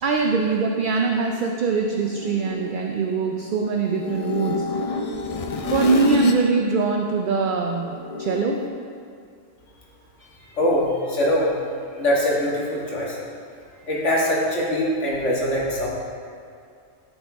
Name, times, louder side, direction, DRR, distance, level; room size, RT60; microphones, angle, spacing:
voice 1, 0.0-4.7 5.7-8.7, right 4 dB, 60° right, 2 dB, 0.6 m, -23 dB
sound 1, 1.2-6.5 6.8-8.7, left 3 dB, 50° left, 0.4 m, -29 dB
voice 2, 10.6-11.5 11.9-13.2 13.9-15.9, left 1 dB, 75° left, -5 dB, 1.9 m, -22 dB
13.0 x 5.5 x 3.5 m, 2.4 s
omnidirectional pair, 1.3 m